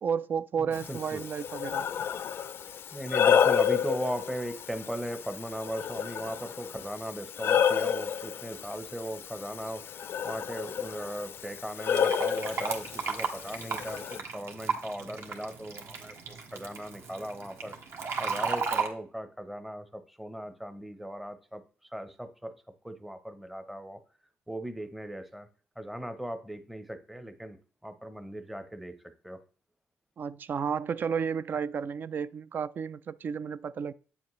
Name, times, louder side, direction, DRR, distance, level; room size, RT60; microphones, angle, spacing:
voice 1, 0.0-1.9 30.2-33.9, right 7 dB, 40° right, 0.3 m, -32 dB
voice 2, 0.6-1.2 2.9-17.8 18.2-22.5 22.8-24.0 24.5-25.5 25.8-27.6 27.8-28.9 29.2-29.4, equal, 5° right, 0.7 m, -38 dB
Breathing, 0.7-14.2, left 8 dB, 50° left, 0.4 m, -30 dB
Fill (with liquid), 11.9-18.9, right 5 dB, 60° right, 1.5 m, -34 dB
9.0 x 7.2 x 3.1 m
cardioid pair, 145°, 5 cm